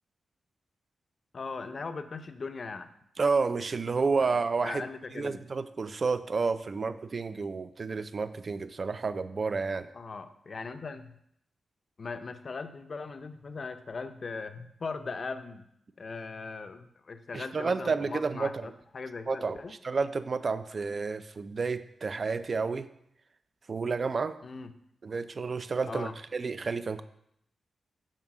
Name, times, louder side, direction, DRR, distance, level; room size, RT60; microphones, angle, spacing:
voice 1, 1.3-2.9 4.2-4.3 4.6-5.5 9.9-11.2 12.0-15.7 16.0-19.7 24.4-24.7 25.8-26.1, left 4 dB, 40° left, 9 dB, 0.6 m, -39 dB
voice 2, 3.2-4.8 5.1-9.9 17.3-18.7 19.3-19.6 19.8-22.9 23.7-24.4 25.0-27.0, right 4 dB, 40° right, 12 dB, 0.5 m, -30 dB
7.4 x 5.6 x 6.0 m, 0.74 s
wide cardioid pair, 145°, 0 cm